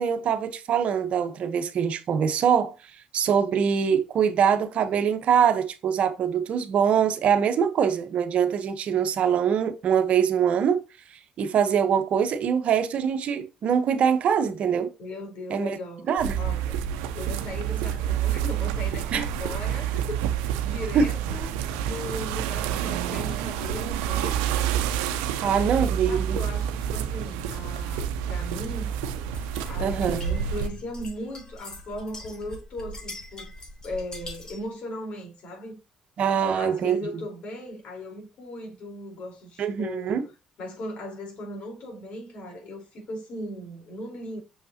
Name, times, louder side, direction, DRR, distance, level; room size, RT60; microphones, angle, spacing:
voice 1, 0.0-2.7 3.1-10.8 11.4-14.9 15.5-15.8 16.1-16.4 19.1-19.2 20.9-21.1 25.4-26.4 29.8-30.2 36.2-37.0 39.6-40.2, right 7 dB, 60° right, 1.2 m, -23 dB
voice 2, 15.0-16.1 16.4-16.9 17.1-21.6 21.8-24.5 25.4-28.9 29.7-33.5 33.8-35.8 36.3-40.2 40.6-44.4, left 1 dB, 65° left, 4.3 m, -38 dB
sound 1, 16.2-30.7, right 9 dB, 90° right, 0.7 m, -28 dB
sound 2, 29.3-34.7, left 1 dB, 30° left, 3.5 m, -42 dB
6.8 x 5.3 x 2.9 m
supercardioid pair, 65°, 2 cm